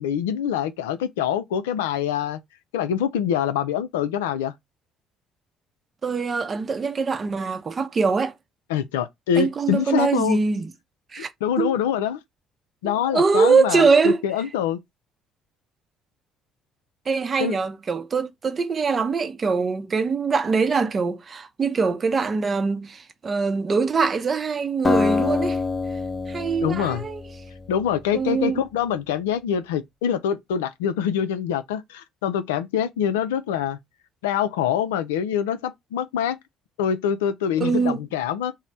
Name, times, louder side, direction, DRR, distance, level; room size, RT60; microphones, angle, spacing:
voice 1, 0.0-2.4 2.7-4.5 8.7-10.4 11.4-12.2 12.8-14.8 17.4-17.6 26.6-27.0 27.7-33.8 34.2-36.4 36.8-38.5, left 9 dB, 85° left, 0.3 m, -25 dB
voice 2, 6.0-8.3 9.4-10.7 11.1-11.3 11.6-11.7 12.8-14.2 17.1-25.6 26.3-27.2 28.1-28.6 37.6-38.0, right 4 dB, 40° right, 0.6 m, -23 dB
Acoustic guitar, 24.8-28.0, left 4 dB, 25° left, 0.6 m, -25 dB
3.2 x 2.0 x 4.0 m
hypercardioid pair, 55°, 0 cm